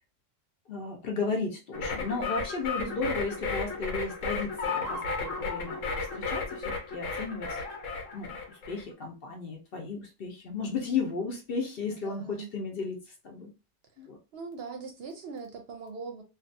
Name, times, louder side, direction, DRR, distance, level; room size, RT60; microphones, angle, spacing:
voice 1, 0.7-5.8 6.1-7.6 8.1-13.5 14.0-14.2, left 4 dB, 55° left, 0.8 m, -34 dB
sound 1, 1.7-8.8, left 4 dB, 85° left, 1.2 m, -34 dB
voice 2, 11.9-12.5 14.3-16.2, right 4 dB, 60° right, 0.7 m, -41 dB
2.6 x 2.3 x 2.5 m
omnidirectional pair, 1.3 m